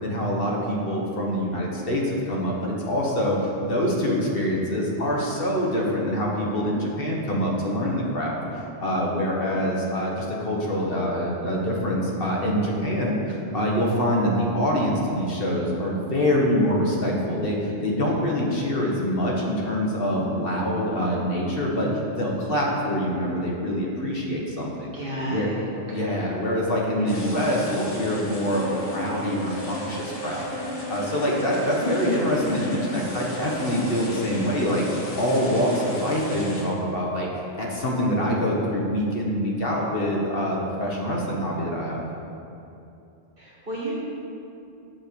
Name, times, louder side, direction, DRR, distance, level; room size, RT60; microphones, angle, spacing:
voice 1, 0.0-24.9 25.2-25.5 25.8-42.0, equal, 55° left, -2 dB, 1.3 m, -25 dB
voice 2, 24.9-26.2 26.9-27.2 43.4-44.0, right 2 dB, 55° right, -7 dB, 2.3 m, -33 dB
sound 1, 27.1-36.6, left 1 dB, 35° left, 1.3 m, -33 dB
7.4 x 4.4 x 6.8 m, 2.7 s
omnidirectional pair, 1.1 m